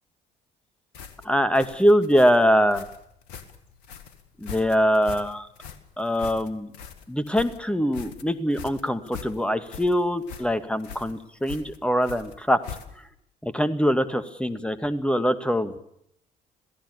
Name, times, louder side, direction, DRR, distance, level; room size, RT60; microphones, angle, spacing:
sound 1, 0.9-13.2, left 7 dB, 75° left, 1.9 m, -42 dB
voice 1, 1.2-2.8 4.4-5.5 6.0-6.7 7.1-12.6 13.4-15.8, equal, 5° left, 10 dB, 2.2 m, -23 dB
27.0 x 16.5 x 7.2 m, 0.74 s
figure-of-eight pair, 45°, 21 cm